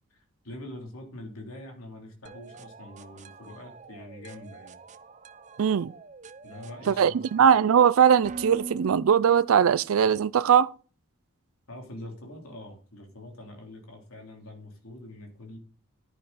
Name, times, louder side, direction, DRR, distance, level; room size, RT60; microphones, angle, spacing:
voice 1, 0.1-4.8 6.4-7.5 11.7-15.6, left 1 dB, 90° left, 3.3 m, -44 dB
sound 1, 2.3-10.0, right 3 dB, 35° right, 0.5 m, -44 dB
voice 2, 5.6-5.9 6.9-10.7, right 8 dB, 85° right, 0.4 m, -20 dB
10.5 x 10.0 x 4.1 m
head